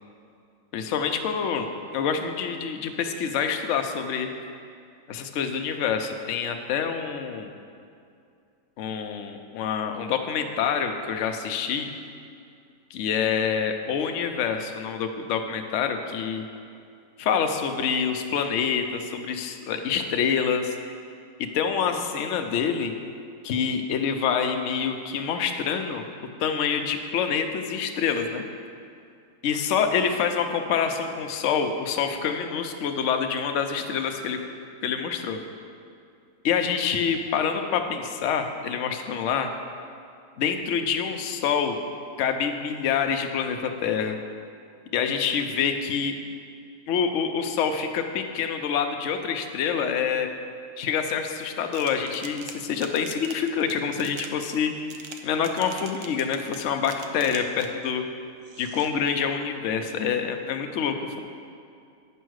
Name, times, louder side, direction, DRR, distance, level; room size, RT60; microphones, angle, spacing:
voice 1, 0.7-4.3 5.1-7.5 8.8-11.9 12.9-16.4 17.2-20.8 21.4-22.9 23.4-26.0 26.4-28.4 29.4-34.4 34.8-35.4 36.4-39.5 40.4-41.8 42.2-44.2 44.9-46.1 46.9-50.3 50.8-54.7 55.2-58.0 58.6-61.2, left 7 dB, 70° left, 5 dB, 0.7 m, -26 dB
sound 1, 51.7-57.8 58.4-58.9, right 6 dB, 70° right, 1.1 m, -43 dB
9.2 x 5.6 x 6.3 m, 2.4 s
omnidirectional pair, 2.0 m